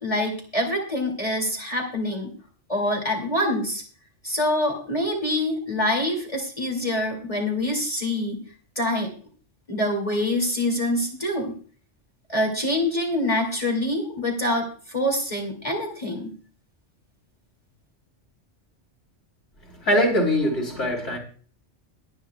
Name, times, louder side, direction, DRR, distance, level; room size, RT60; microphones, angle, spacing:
voice 1, 0.0-2.3 2.7-3.8 4.2-8.4 8.8-9.1 9.7-11.5 12.3-16.3, left 1 dB, 30° left, 0 dB, 2.6 m, -25 dB
voice 2, 19.8-21.2, equal, 85° left, 1 dB, 4.1 m, -22 dB
22.5 x 9.2 x 2.3 m, 0.42 s
omnidirectional pair, 1.2 m